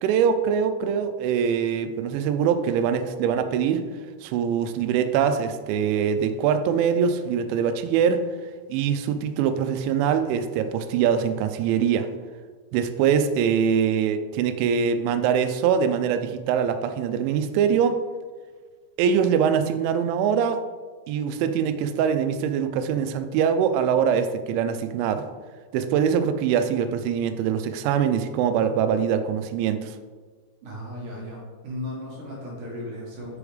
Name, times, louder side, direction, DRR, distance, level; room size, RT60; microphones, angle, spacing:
voice 1, 0.0-3.8 4.2-8.2 8.7-12.1 12.7-18.0 19.0-20.6 21.1-25.3 25.7-30.0, right 7 dB, 80° right, 9 dB, 2.8 m, -23 dB
voice 2, 30.6-33.4, left 1 dB, 65° right, -4 dB, 2.1 m, -36 dB
7.0 x 5.0 x 4.9 m, 1.4 s
omnidirectional pair, 5.7 m